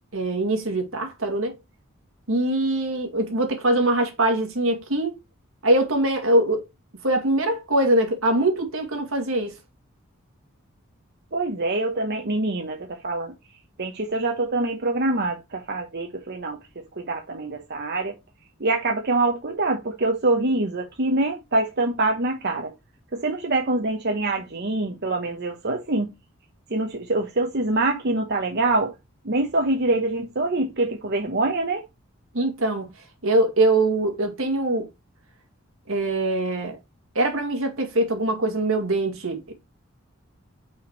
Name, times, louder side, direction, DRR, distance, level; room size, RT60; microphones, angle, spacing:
voice 1, 0.1-1.6 2.3-5.1 5.6-6.6 7.0-9.5 32.3-32.9 33.2-34.9 35.9-36.8 37.1-39.5, right 1 dB, 80° right, 2.3 m, -23 dB
voice 2, 11.3-13.3 13.8-16.6 17.0-18.1 18.6-22.7 23.1-26.1 26.7-28.9 29.2-31.8, right 2 dB, 55° right, 1.1 m, -25 dB
5.8 x 4.8 x 4.7 m
head